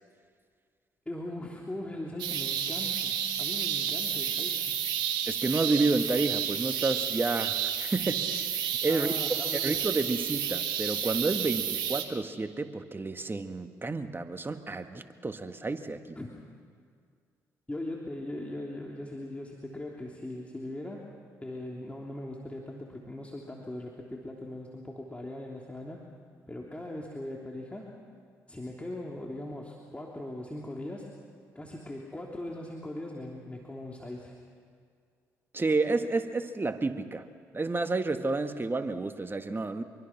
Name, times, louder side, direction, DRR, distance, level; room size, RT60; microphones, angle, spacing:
voice 1, 1.0-4.6 8.9-9.8 16.1-16.3 17.7-21.1 21.4-26.1 26.5-27.9 28.5-31.1 31.5-34.3, left 1 dB, 15° left, -1 dB, 3.2 m, -40 dB
sound 1, 2.2-12.0, right 9 dB, 75° right, 1.8 m, -31 dB
voice 2, 5.3-9.1 9.5-16.2 35.5-37.3 37.5-39.8, right 3 dB, 25° right, 8 dB, 1.8 m, -30 dB
25.0 x 23.5 x 6.1 m, 2.1 s
hypercardioid pair, 45°, 8 cm